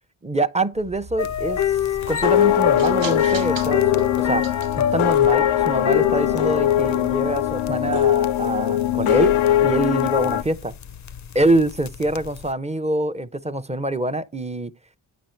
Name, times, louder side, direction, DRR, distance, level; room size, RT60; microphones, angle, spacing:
voice 1, 0.2-1.8 2.1-4.5 4.8-9.4 9.6-10.7 11.3-14.7, right 2 dB, 15° right, 0.6 m, -25 dB
sound 1, 0.7-8.1, right 4 dB, 75° right, 1.0 m, -41 dB
sound 2, 1.2-12.5, left 9 dB, 40° left, 0.5 m, -28 dB
sound 3, 2.0-10.4, left 12 dB, 90° left, 0.6 m, -21 dB
8.9 x 5.1 x 4.4 m
cardioid pair, 40°, 47 cm